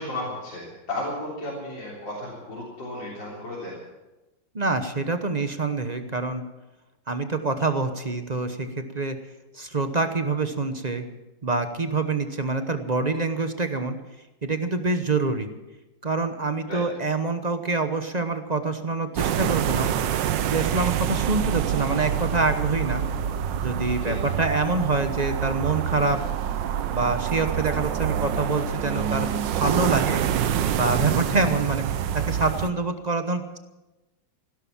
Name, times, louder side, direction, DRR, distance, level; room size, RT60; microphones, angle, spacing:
voice 1, 0.0-3.8 16.7-16.8 20.9-21.1 24.0-24.2 31.2-31.4, left 1 dB, 80° left, -7 dB, 4.5 m, -34 dB
voice 2, 4.5-6.4 7.1-9.2 9.5-11.0 11.4-14.0 14.4-15.5 16.0-19.9 20.4-23.0 23.6-26.2 26.9-30.2 30.7-31.8 32.1-33.6, right 3 dB, 35° right, 8 dB, 0.7 m, -26 dB
sound 1, 19.1-32.7, right 9 dB, 75° right, 1.5 m, -26 dB
16.0 x 12.5 x 7.2 m, 1.1 s
omnidirectional pair, 2.0 m